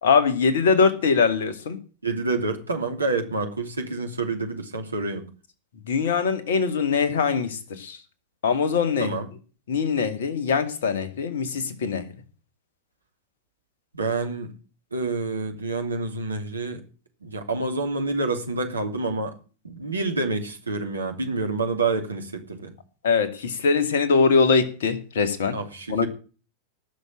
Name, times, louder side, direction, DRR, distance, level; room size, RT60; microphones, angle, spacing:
voice 1, 0.0-1.8 5.9-8.0 8.4-9.2 9.7-12.1 23.0-25.6 25.9-26.1, left 5 dB, 60° left, 2.1 m, -22 dB
voice 2, 2.0-5.3 9.0-9.3 13.9-14.5 14.9-16.8 17.2-19.3 19.6-22.7 25.5-26.1, right 3 dB, 75° right, 2.8 m, -28 dB
19.0 x 6.7 x 8.6 m
figure-of-eight pair, 90°, 0 cm